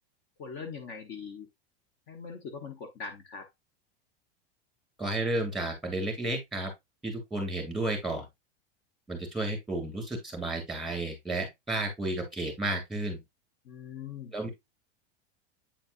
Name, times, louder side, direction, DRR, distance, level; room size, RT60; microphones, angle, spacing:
voice 1, 0.4-1.5 2.1-3.5 13.6-14.3, left 5 dB, 45° left, 1.2 m, -41 dB
voice 2, 5.0-6.7 7.0-8.3 9.1-13.2 14.3-14.5, right 2 dB, ahead, 2.7 m, -32 dB
8.8 x 4.2 x 2.6 m
supercardioid pair, 145°, 30 cm